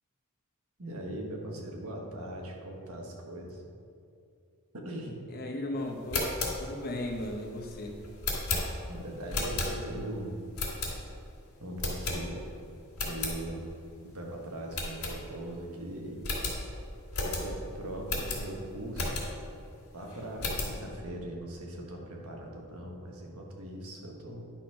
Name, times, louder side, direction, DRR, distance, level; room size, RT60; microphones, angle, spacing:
voice 1, 0.8-3.6 4.7-5.2 8.3-10.4 11.6-12.5 13.0-13.7 14.0-16.2 17.2-19.3 19.9-24.5, right 1 dB, 80° right, 0 dB, 1.4 m, -40 dB
voice 2, 5.3-8.0, left 1 dB, 45° left, 2 dB, 1.0 m, -36 dB
sound 1, 5.9-10.1 10.5-11.3 11.8-12.6 12.9-13.4 13.8-13.9 14.2-14.3 14.7-15.6 15.9-16.0 16.2-19.5 20.0-20.8, left 2 dB, 75° left, 2.3 m, -34 dB
10.5 x 4.2 x 5.8 m, 2.5 s
head